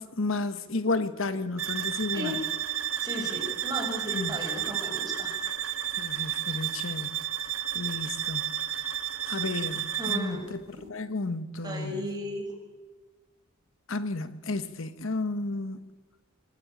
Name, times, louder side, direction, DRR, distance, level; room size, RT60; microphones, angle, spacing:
voice 1, 0.0-2.4 4.1-4.4 6.0-7.2 7.7-8.5 9.2-10.6 10.9-12.0 13.9-15.9, left 3 dB, 70° left, 1.1 m, -32 dB
sound 1, 1.6-10.4, right 10 dB, 85° right, 1.6 m, -32 dB
voice 2, 3.0-5.3 10.0-10.9 11.6-12.5, equal, 20° right, 6.0 m, -35 dB
25.0 x 17.5 x 9.1 m
head